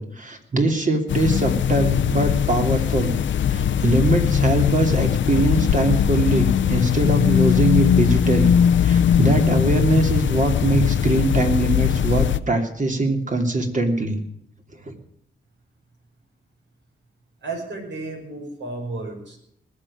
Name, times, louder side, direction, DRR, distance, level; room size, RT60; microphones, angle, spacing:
voice 1, 0.0-3.2 3.5-8.5 8.8-14.2 14.8-14.9, right 2 dB, 40° right, 4 dB, 2.9 m, -22 dB
sound 1, 1.1-12.4, left 9 dB, 75° left, 0.7 m, -20 dB
voice 2, 17.4-19.4, right 3 dB, 70° right, 0 dB, 6.0 m, -32 dB
20.0 x 6.8 x 9.9 m, 0.72 s
cardioid pair, 80°, 19 cm